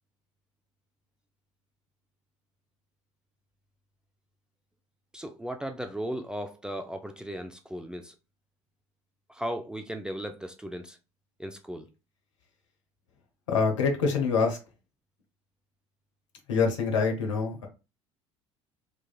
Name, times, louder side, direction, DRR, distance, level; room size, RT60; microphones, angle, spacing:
voice 1, 5.1-8.1 9.3-11.0 11.4-11.9, equal, 5° right, 0.4 m, -36 dB
voice 2, 13.5-14.6 16.5-17.7, left 5 dB, 70° left, 0.9 m, -25 dB
3.4 x 3.0 x 2.3 m
figure-of-eight pair, 65°, 16 cm